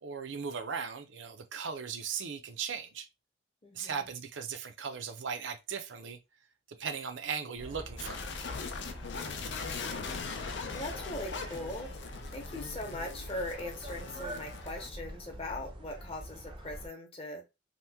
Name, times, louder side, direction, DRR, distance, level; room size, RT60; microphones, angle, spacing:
voice 1, 0.0-3.1 3.7-6.2 6.8-8.3, right 6 dB, 75° right, 0.5 m, -38 dB
voice 2, 3.6-4.1 9.1-10.1 10.7-12.0 12.3-17.5, left 1 dB, 30° left, 0.7 m, -41 dB
sound 1, 7.6-16.9, equal, 25° right, 0.5 m, -45 dB
sound 2, 8.0-14.9, left 5 dB, 65° left, 0.4 m, -41 dB
2.9 x 2.1 x 3.4 m
head